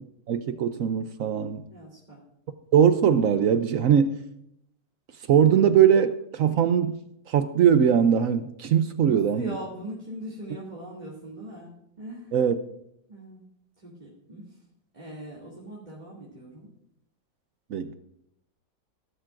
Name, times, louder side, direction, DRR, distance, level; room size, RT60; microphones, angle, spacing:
voice 1, 0.3-1.6 2.7-4.2 5.3-7.0 7.3-9.6 12.3-12.6 17.7-17.9, right 8 dB, 70° right, 0.8 m, -21 dB
voice 2, 1.7-2.2 9.0-11.7 12.0-12.4 13.1-13.4 13.8-14.4 14.9-16.7, equal, 25° right, 2.7 m, -40 dB
18.0 x 12.0 x 2.5 m
omnidirectional pair, 2.0 m